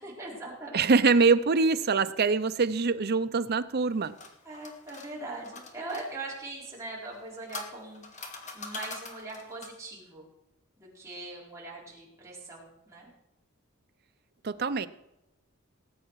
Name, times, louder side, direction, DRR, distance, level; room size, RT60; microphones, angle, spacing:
voice 1, 0.0-1.0 4.4-8.3 8.5-10.3 10.8-13.1, right 2 dB, 15° right, -5 dB, 4.3 m, -41 dB
voice 2, 0.7-4.2 14.4-14.9, right 4 dB, 50° right, 11 dB, 0.6 m, -24 dB
sound 1, 3.8-6.1 7.0-9.9, left 4 dB, 35° left, 1.8 m, -44 dB
18.5 x 8.6 x 4.7 m, 0.88 s
head